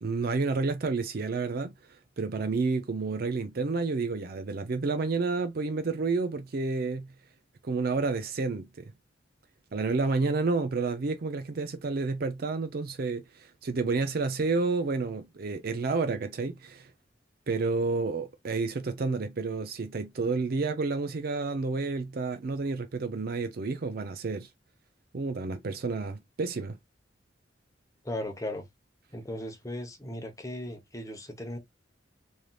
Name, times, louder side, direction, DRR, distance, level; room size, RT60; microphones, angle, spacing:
voice 1, 0.0-1.7 2.2-7.1 7.6-8.9 9.7-16.9 17.5-24.5 25.1-26.8, right 4 dB, 55° right, 0.5 m, -30 dB
voice 2, 28.0-28.6 29.1-31.6, left 1 dB, 20° left, 0.8 m, -37 dB
3.3 x 2.7 x 2.3 m
head